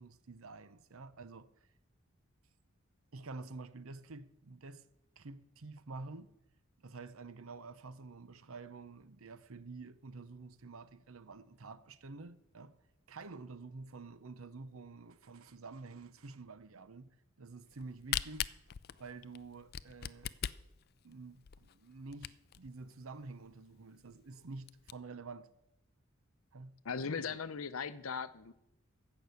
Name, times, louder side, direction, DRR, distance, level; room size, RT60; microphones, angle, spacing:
voice 1, 0.0-1.5 3.1-4.8 5.2-6.3 6.8-12.7 13.1-18.5 19.0-20.3 21.0-25.5 26.5-26.8 27.1-27.4, right 3 dB, 80° right, 0.8 m, -49 dB
Camera, 17.7-22.7 23.2-23.3 23.5-23.6 24.1-24.2 24.5-24.9, left 10 dB, 45° left, 0.4 m, -39 dB
voice 2, 26.8-28.5, left 5 dB, 80° left, 0.7 m, -38 dB
14.5 x 6.1 x 8.2 m
head